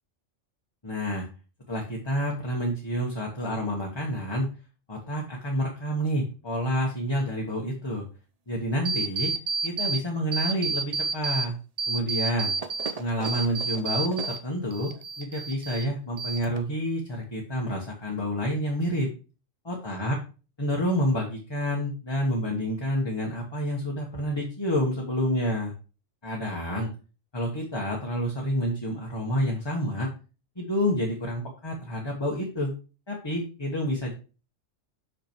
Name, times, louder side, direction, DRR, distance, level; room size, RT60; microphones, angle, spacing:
voice 1, 0.8-1.3 1.7-4.5 4.9-8.0 8.5-9.3 9.6-11.6 11.9-12.5 13.0-14.9 15.2-19.1 19.6-20.2 20.6-25.7 26.2-26.9 27.3-30.1 30.6-32.7 33.1-34.1, equal, 20° left, -2 dB, 1.3 m, -28 dB
sound 1, 8.9-10.0 10.3-11.5 11.8-14.4 14.7-15.9 16.2-16.8, right 4 dB, 40° right, 0.6 m, -30 dB
6.1 x 5.8 x 4.5 m, 0.34 s
omnidirectional pair, 1.3 m